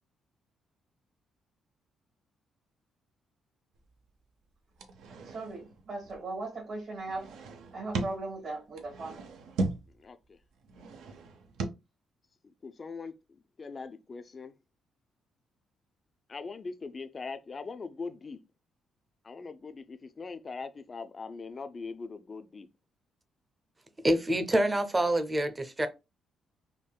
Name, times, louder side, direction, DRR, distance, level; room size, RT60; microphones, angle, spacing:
sound 1, 3.8-4.0 4.8-6.2 7.0-8.3 8.8-10.0 10.5-11.7, right 3 dB, 80° right, 0.5 m, -37 dB
voice 1, 5.2-7.3 7.7-9.2, right 2 dB, 60° right, 1.3 m, -38 dB
voice 2, 10.0-10.4 12.4-14.5 16.3-18.4 19.2-22.7, left 4 dB, 35° left, 0.4 m, -41 dB
voice 3, 24.0-25.9, right 1 dB, 20° right, 0.5 m, -26 dB
3.5 x 2.2 x 2.2 m
cardioid pair, 90°, 0 cm